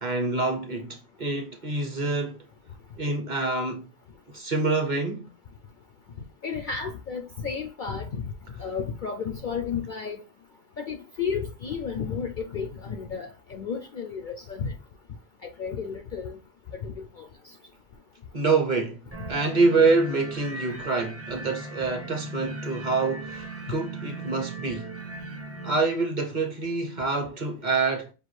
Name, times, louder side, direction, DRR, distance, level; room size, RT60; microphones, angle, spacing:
voice 1, 0.0-2.5 3.0-3.9 4.3-5.3 8.5-8.7 18.3-24.9 25.6-28.1, right 3 dB, 45° right, 0.8 m, -26 dB
voice 2, 6.4-8.3 8.6-10.2 10.8-14.7 15.6-16.4 16.7-17.3, left 6 dB, 65° left, 0.5 m, -32 dB
sound 1, 19.1-25.8, right 2 dB, 15° right, 0.5 m, -38 dB
5.3 x 2.5 x 3.1 m
omnidirectional pair, 1.3 m